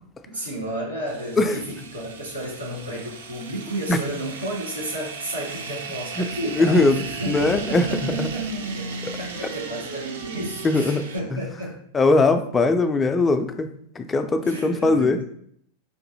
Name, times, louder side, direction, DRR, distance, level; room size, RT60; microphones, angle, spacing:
voice 1, 0.3-8.9 9.2-11.8 14.4-15.2, right 1 dB, 80° right, -4 dB, 1.4 m, -32 dB
sound 1, 1.1-11.2, right 5 dB, 60° right, 0.4 m, -35 dB
voice 2, 6.5-7.0 7.2-8.3 9.0-9.1 10.6-11.1 11.3-11.4 11.9-13.7 14.0-15.2, left 3 dB, 15° left, 7 dB, 0.3 m, -20 dB
3.7 x 2.6 x 2.6 m, 0.68 s
figure-of-eight pair, 90°, 0 cm